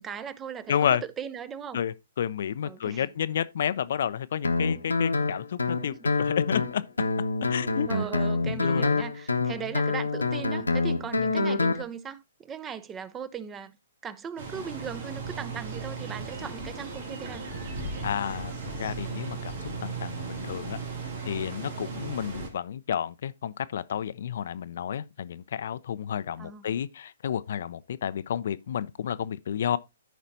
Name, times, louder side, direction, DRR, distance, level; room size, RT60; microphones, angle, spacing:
voice 1, 0.0-1.8 2.6-3.0 5.9-6.0 7.9-13.7 14.0-17.4 26.4-26.8, right 7 dB, 15° right, 0.5 m, -38 dB
voice 2, 0.7-1.0 1.7-6.8 7.4-7.9 8.4-9.0 9.4-9.6 11.2-11.3 18.0-20.8 21.2-29.8, left 9 dB, 55° left, 0.4 m, -31 dB
Guitar, 4.4-11.8, left 3 dB, 80° left, 0.9 m, -27 dB
sound 1, 14.4-22.5, right 4 dB, 55° right, 2.6 m, -36 dB
13.5 x 5.1 x 2.7 m
figure-of-eight pair, 120°, 0 cm